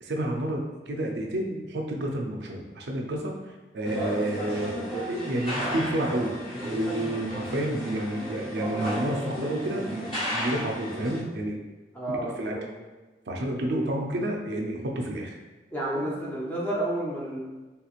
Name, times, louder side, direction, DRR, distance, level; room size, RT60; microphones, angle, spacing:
voice 1, 0.0-3.3 3.7-11.6 12.1-12.5 13.3-15.4 15.9-16.0, right 1 dB, 75° right, 1 dB, 0.5 m, -30 dB
sound 1, 3.8-11.2, equal, 30° left, 1.0 m, -34 dB
voice 2, 11.9-12.7 15.7-17.4, right 1 dB, 10° left, -5 dB, 0.6 m, -30 dB
3.4 x 2.9 x 2.4 m, 1.2 s
head